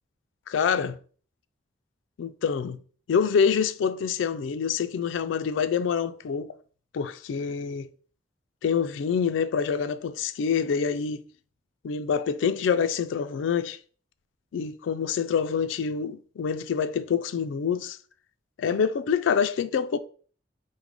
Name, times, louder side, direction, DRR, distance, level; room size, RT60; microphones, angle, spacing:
voice 1, 0.5-1.0 2.2-2.8 3.1-6.5 6.9-7.9 8.6-11.2 11.8-13.8 14.5-18.0 18.6-20.0, left 6 dB, 90° left, 0.3 m, -26 dB
4.7 x 2.0 x 3.7 m
head